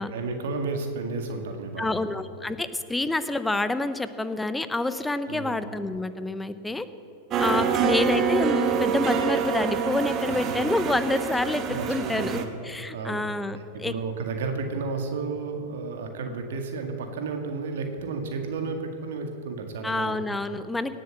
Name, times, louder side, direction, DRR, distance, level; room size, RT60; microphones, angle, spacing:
voice 1, 0.0-1.9 5.3-5.6 7.4-7.6 10.3-10.6 11.7-13.2 13.7-20.2, right 4 dB, 70° right, 5 dB, 1.9 m, -32 dB
voice 2, 1.8-6.9 7.4-12.4 12.6-13.9 19.8-21.0, left 2 dB, 10° left, 12 dB, 0.8 m, -28 dB
sound 1, 7.3-12.4, right 6 dB, 35° right, 1.4 m, -26 dB
17.5 x 7.7 x 7.8 m, 2.7 s
hypercardioid pair, 100°, 0 cm